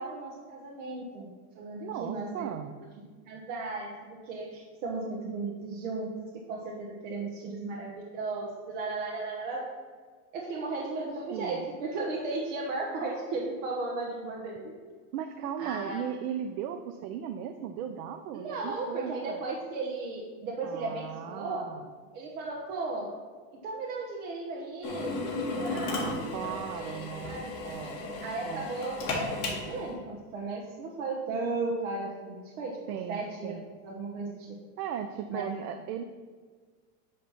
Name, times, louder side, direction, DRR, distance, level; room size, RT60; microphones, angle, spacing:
voice 1, 0.0-2.5 3.3-3.9 4.2-6.1 6.5-9.7 10.3-14.7 15.6-16.0 18.3-21.7 22.1-23.1 23.6-27.6 28.2-33.5 33.8-34.6 35.3-35.5, right 3 dB, 55° right, -2 dB, 1.2 m, -35 dB
voice 2, 1.8-2.7 10.6-10.9 11.3-11.7 15.1-19.4 20.6-21.9 25.7-28.0 28.4-28.7 32.9-33.7 34.8-36.0, right 8 dB, 80° right, 7 dB, 0.7 m, -37 dB
Drill, 24.8-29.9, left 2 dB, 35° left, 1.7 m, -34 dB
9.6 x 3.3 x 5.8 m, 1.5 s
supercardioid pair, 170°, 45 cm